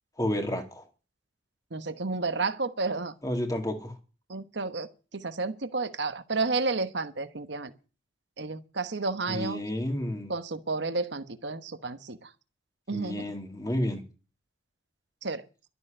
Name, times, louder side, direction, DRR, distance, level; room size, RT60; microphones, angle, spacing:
voice 1, 0.2-0.8 3.2-3.9 9.3-10.3 12.9-14.0, left 1 dB, 20° left, 2.1 m, -31 dB
voice 2, 1.7-3.1 4.3-7.7 8.4-9.6 10.3-12.3 12.9-13.3 15.2-15.4, right 3 dB, 60° right, 1.2 m, -31 dB
12.5 x 7.1 x 9.9 m
head